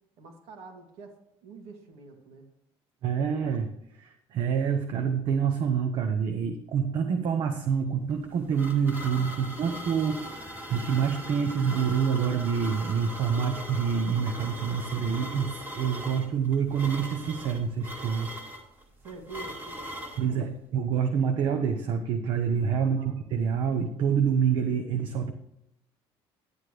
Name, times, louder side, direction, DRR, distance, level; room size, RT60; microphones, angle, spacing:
voice 1, 0.2-2.5 9.4-9.8 19.0-20.5 22.8-23.2, right 3 dB, 75° right, 2 dB, 2.3 m, -46 dB
voice 2, 3.0-18.4 20.2-23.0 23.3-25.3, right 7 dB, 50° right, 5 dB, 0.9 m, -27 dB
sound 1, 8.1-20.3, equal, 20° right, 1.8 m, -40 dB
11.0 x 9.6 x 3.3 m, 0.80 s
cardioid pair, 175°, 10 cm